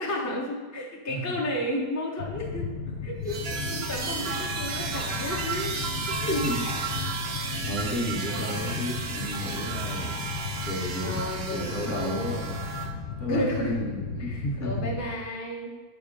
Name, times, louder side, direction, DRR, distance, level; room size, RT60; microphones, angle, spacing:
voice 1, 0.0-2.7 3.0-6.4 7.7-7.8 8.2-8.7 11.0-12.3 13.2-13.8 14.2-15.7, left 1 dB, 25° left, -3 dB, 0.3 m, -32 dB
sound 1, 2.2-15.1, left 6 dB, 80° left, 1.2 m, -35 dB
sound 2, 3.3-12.9, right 5 dB, 70° right, 0.6 m, -33 dB
voice 2, 7.6-10.2 10.6-12.6 13.2-14.9, equal, 40° left, -2 dB, 0.8 m, -32 dB
7.3 x 3.6 x 5.0 m, 1.4 s
omnidirectional pair, 1.8 m